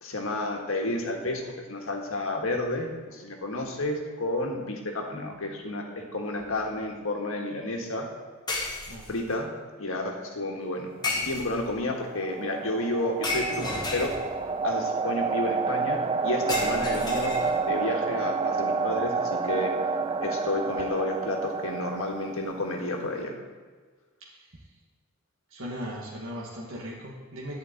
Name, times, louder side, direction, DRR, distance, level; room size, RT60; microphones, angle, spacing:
voice 1, 0.0-8.1 9.1-9.5 9.8-14.1 14.6-16.0 16.2-17.3 17.7-19.7 20.2-23.4, left 1 dB, 65° left, 2 dB, 1.6 m, -31 dB
sound 1, 6.4-6.6 8.5-9.3 11.0-11.8 13.2-14.5 16.5-17.8, left 2 dB, 20° left, 1.3 m, -33 dB
sound 2, 11.8-22.6, right 4 dB, 25° right, 0.4 m, -29 dB
voice 2, 25.5-27.6, equal, 60° right, -4 dB, 1.6 m, -38 dB
10.5 x 5.2 x 8.4 m, 1.5 s
head